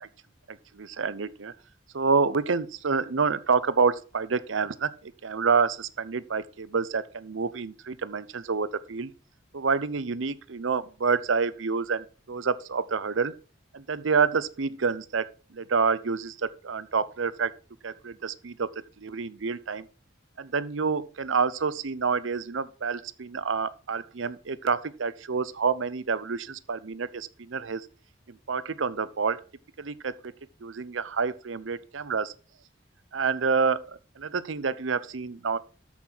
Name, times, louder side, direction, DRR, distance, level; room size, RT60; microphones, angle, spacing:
voice 1, 0.5-1.5 1.9-9.1 9.5-13.3 13.7-15.2 15.5-17.5 17.8-18.7 19.0-19.9 20.4-27.9 28.3-29.4 29.8-30.1 30.6-32.3 33.1-35.6, right 5 dB, 85° right, 0.7 m, -28 dB
13.5 x 5.8 x 4.5 m
head